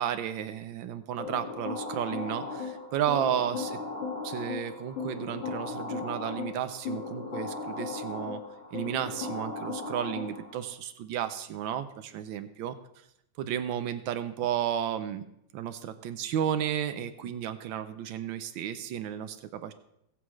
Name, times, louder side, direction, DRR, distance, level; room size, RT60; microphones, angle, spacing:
voice 1, 0.0-3.8 4.2-8.4 8.7-12.7 13.4-15.2 15.5-19.7, right 9 dB, 85° right, 10 dB, 1.4 m, -33 dB
sound 1, 1.2-10.6, left 4 dB, 70° left, 2.7 m, -37 dB
19.0 x 7.6 x 3.2 m, 0.77 s
omnidirectional pair, 2.1 m